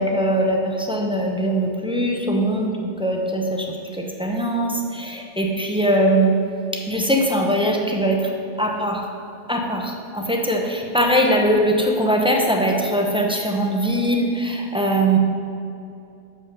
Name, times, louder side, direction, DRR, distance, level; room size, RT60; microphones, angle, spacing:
voice 1, 0.0-6.4 6.7-8.3 8.6-9.1 9.5-15.2, right 1 dB, 5° right, 1 dB, 0.6 m, -21 dB
7.0 x 5.4 x 6.7 m, 2.6 s
omnidirectional pair, 1.1 m